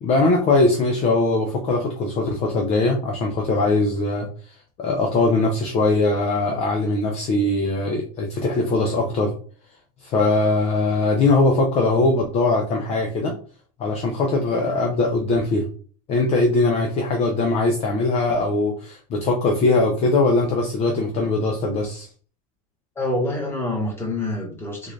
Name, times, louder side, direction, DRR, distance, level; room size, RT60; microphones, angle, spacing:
voice 1, 0.0-4.3 4.8-9.3 10.0-13.3 13.8-15.7 16.1-22.1, left 2 dB, 35° left, 2 dB, 0.6 m, -21 dB
voice 2, 22.9-24.9, left 2 dB, 15° left, -2 dB, 1.4 m, -26 dB
3.7 x 2.5 x 3.2 m, 0.43 s
supercardioid pair, 140°, 19 cm